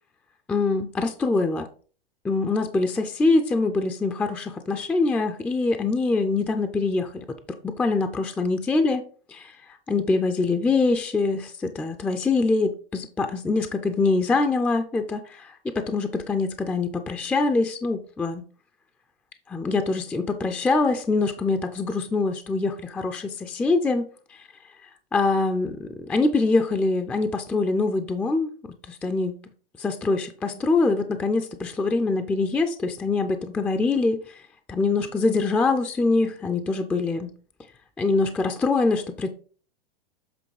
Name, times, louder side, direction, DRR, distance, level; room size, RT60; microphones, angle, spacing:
voice 1, 0.5-1.7 2.2-7.4 7.6-9.0 9.3-9.6 9.9-18.4 19.5-24.0 24.3-24.4 24.8-28.5 28.9-29.3 29.8-34.4 34.7-37.3 38.0-39.3, left 3 dB, 5° left, 0.3 m, -24 dB
7.7 x 3.3 x 4.7 m
hypercardioid pair, 115°, 29 cm